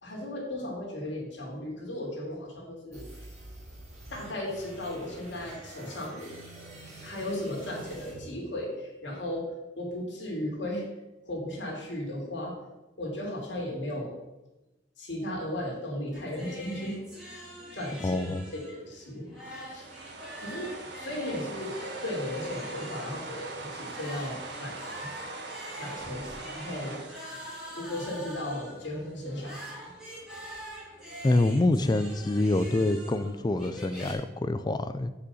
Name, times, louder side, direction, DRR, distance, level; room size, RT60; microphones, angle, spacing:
voice 1, 0.0-3.0 4.1-6.3 7.0-9.5 9.8-10.8 11.2-12.5 13.0-14.1 15.0-17.0 17.7-19.3 19.7-19.9 20.4-20.7 21.0-25.4 25.8-27.0 27.8-29.9, left 1 dB, 65° left, -2 dB, 2.7 m, -36 dB
sound 1, 2.9-8.9, right 1 dB, 40° right, 3.5 m, -47 dB
sound 2, 16.1-34.1, equal, 5° right, 2.9 m, -45 dB
voice 2, 18.0-18.4 31.2-35.1, left 2 dB, 20° left, 12 dB, 0.4 m, -26 dB
sound 3, 19.4-28.7, right 3 dB, 65° right, 1.3 m, -42 dB
6.2 x 5.6 x 7.0 m, 1.0 s
head